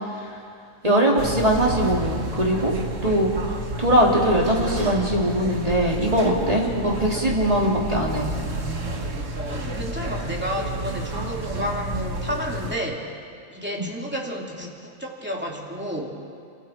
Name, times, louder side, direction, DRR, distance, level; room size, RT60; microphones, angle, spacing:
voice 1, 0.8-2.7 3.0-3.3 3.8-8.3 13.8-13.9, right 1 dB, 25° right, -2 dB, 3.4 m, -21 dB
sound 1, 1.2-12.8, right 1 dB, 65° right, 1.9 m, -30 dB
voice 2, 9.4-13.1 13.5-16.1, equal, 5° right, -2 dB, 2.8 m, -31 dB
28.5 x 26.5 x 4.6 m, 2.3 s
omnidirectional pair, 1.4 m